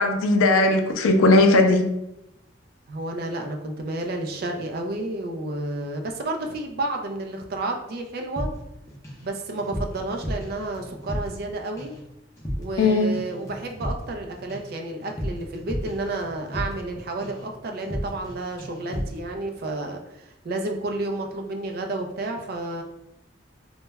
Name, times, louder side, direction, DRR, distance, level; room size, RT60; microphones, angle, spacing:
voice 1, 0.0-1.8 12.8-13.1, left 2 dB, 85° left, 5 dB, 0.4 m, -18 dB
voice 2, 2.9-8.5 9.2-11.9 12.6-22.8, right 2 dB, 50° right, 3 dB, 0.3 m, -31 dB
sound 1, 8.4-9.3 9.5-11.5 11.8-12.1 12.4-12.9 13.1-16.9 17.2-17.5 17.8-18.3 18.6-19.2, equal, 15° left, 0.5 m, -33 dB
2.1 x 2.0 x 3.3 m, 0.88 s
head